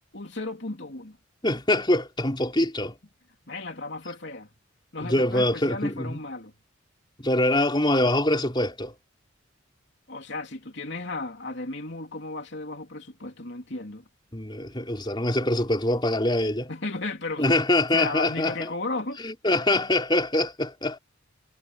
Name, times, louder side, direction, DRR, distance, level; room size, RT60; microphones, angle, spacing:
voice 1, 0.1-1.2 3.5-4.5 4.9-6.5 10.1-14.0 16.7-17.5 17.9-19.2, left 2 dB, 60° left, 3.3 m, -34 dB
voice 2, 1.4-3.0 5.0-6.2 7.2-8.9 14.3-16.7 17.4-18.7 19.2-21.0, left 1 dB, 20° left, 4.2 m, -24 dB
head